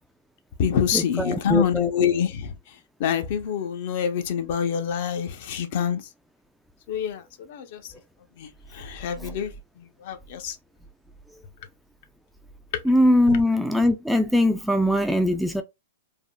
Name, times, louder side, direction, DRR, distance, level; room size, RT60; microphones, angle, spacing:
voice 1, 0.6-2.5 3.0-6.0 6.9-7.8 8.4-9.5 9.8-10.6 12.7-12.8, left 8 dB, 55° left, 0.6 m, -26 dB
voice 2, 1.2-2.1 9.2-9.3 12.9-15.6, left 1 dB, ahead, 0.3 m, -21 dB
3.4 x 2.0 x 2.2 m
hypercardioid pair, 130°, 0 cm